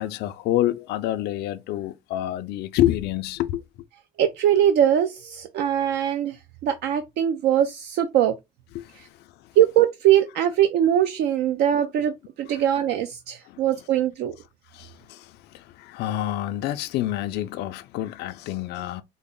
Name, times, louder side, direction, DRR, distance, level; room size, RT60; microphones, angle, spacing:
voice 1, 0.0-3.6 8.7-9.1 12.5-12.6 13.5-13.6 14.7-19.0, left 13 dB, 80° left, 0.4 m, -28 dB
voice 2, 4.2-8.4 9.0-9.1 9.6-14.4, right 10 dB, 80° right, 0.4 m, -22 dB
3.9 x 2.0 x 3.6 m
cardioid pair, 110°, 17 cm